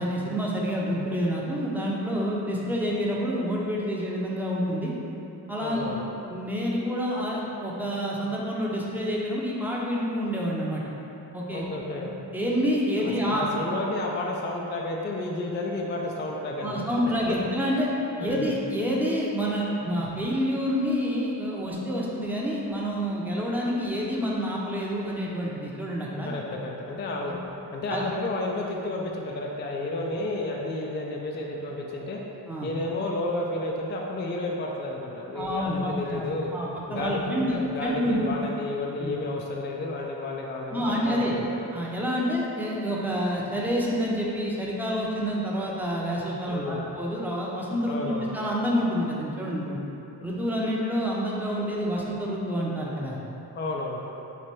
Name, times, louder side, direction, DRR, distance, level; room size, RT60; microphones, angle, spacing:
voice 1, 0.0-4.9 5.5-5.9 6.3-10.8 11.3-11.6 12.0-13.5 16.6-17.9 18.2-26.3 27.3-27.4 27.9-28.1 32.5-32.7 35.3-38.2 39.0-39.1 40.7-41.3 41.7-49.8 50.2-53.2, equal, 5° right, -4 dB, 0.7 m, -28 dB
voice 2, 5.6-6.0 11.5-12.1 13.0-16.8 17.3-17.4 18.2-18.5 26.2-27.4 27.7-32.2 32.6-36.5 36.9-41.5 46.5-46.8 47.9-48.3 53.6-54.0, left 2 dB, 25° left, -1 dB, 0.4 m, -31 dB
3.3 x 2.5 x 4.3 m, 2.9 s
supercardioid pair, 60°, 44 cm